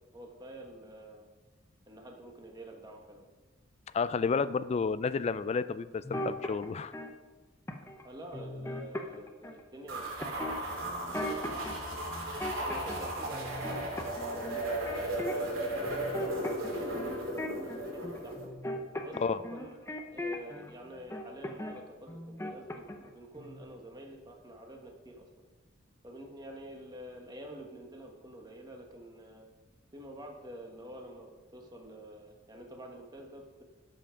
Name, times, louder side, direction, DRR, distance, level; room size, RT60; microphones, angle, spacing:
voice 1, 0.1-1.3 1.9-3.3 8.0-11.9 12.7-17.2 17.4-18.3 19.0-25.2 26.0-29.5 29.9-33.6, right 1 dB, 20° right, 1 dB, 1.3 m, -48 dB
voice 2, 3.9-6.9 19.2-19.4, left 5 dB, 35° left, 15 dB, 0.3 m, -31 dB
sound 1, 6.0-7.1 7.7-8.0 8.3-9.6 10.2-11.7 12.1-13.1 13.3-15.6 15.8-20.7 21.1-21.8 22.1-23.1 23.3-23.6, left 1 dB, 15° left, 0.7 m, -39 dB
sound 2, 9.9-18.4, right 1 dB, 85° right, 2.7 m, -35 dB
12.0 x 5.7 x 5.1 m, 1.2 s
head